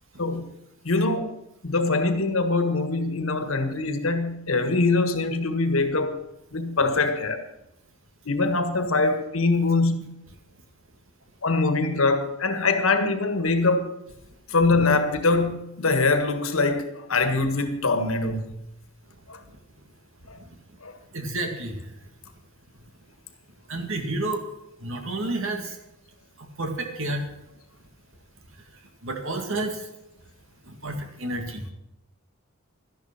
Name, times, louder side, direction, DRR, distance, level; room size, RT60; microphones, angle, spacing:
voice 1, 0.8-1.3 1.6-6.1 6.5-7.4 8.2-10.1 11.4-13.9 14.5-18.6 19.3-19.4 20.8-20.9, left 3 dB, 70° left, 1.7 m, -23 dB
voice 2, 21.1-21.7 23.7-24.4 24.8-25.7 26.6-27.3 29.0-29.7 30.8-31.6, right 2 dB, 65° right, 2.3 m, -29 dB
12.5 x 11.0 x 6.0 m
head